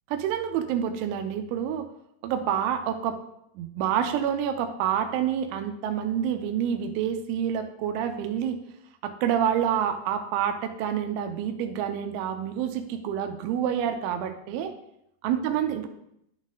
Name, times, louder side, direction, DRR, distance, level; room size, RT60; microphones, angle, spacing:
voice 1, 0.1-1.9 2.2-3.2 3.6-8.6 9.0-14.7 15.2-15.9, right 9 dB, 85° right, 6 dB, 3.1 m, -28 dB
12.0 x 4.2 x 3.7 m, 0.77 s
omnidirectional pair, 5.5 m